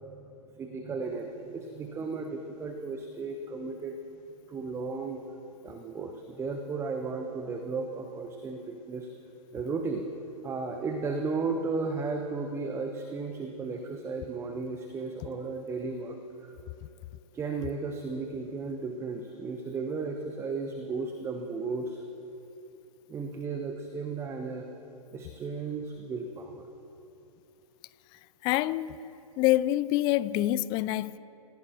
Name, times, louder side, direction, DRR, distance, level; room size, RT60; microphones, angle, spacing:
voice 1, 0.0-3.9 4.5-5.2 5.6-9.1 9.5-10.1 10.4-16.5 17.3-22.0 23.1-24.7 25.1-26.7, right 4 dB, 15° right, 0.9 m, -35 dB
voice 2, 28.4-29.0 29.4-31.2, left 15 dB, 25° left, 0.4 m, -26 dB
27.0 x 17.0 x 3.0 m
figure-of-eight pair, 115°, 19 cm